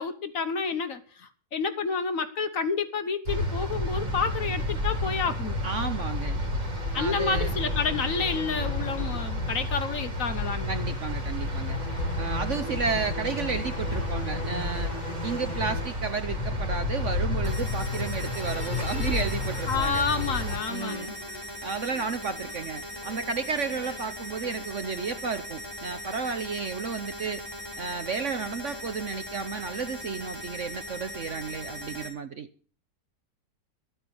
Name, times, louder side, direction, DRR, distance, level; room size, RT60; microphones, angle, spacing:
voice 1, 0.0-5.6 6.9-10.7 19.7-21.2, left 5 dB, 50° left, 1.3 m, -29 dB
sound 1, 3.3-20.6, left 1 dB, 85° right, 3.8 m, -31 dB
voice 2, 5.6-6.4 7.0-7.6 10.7-11.8 12.2-14.9 15.2-20.0 20.7-21.1 21.6-27.4 27.8-32.5, right 5 dB, 55° right, 1.0 m, -32 dB
sound 2, 6.2-25.3, left 4 dB, 30° left, 0.9 m, -39 dB
sound 3, 17.4-32.1, equal, 15° left, 3.8 m, -39 dB
13.0 x 9.0 x 7.0 m
omnidirectional pair, 1.9 m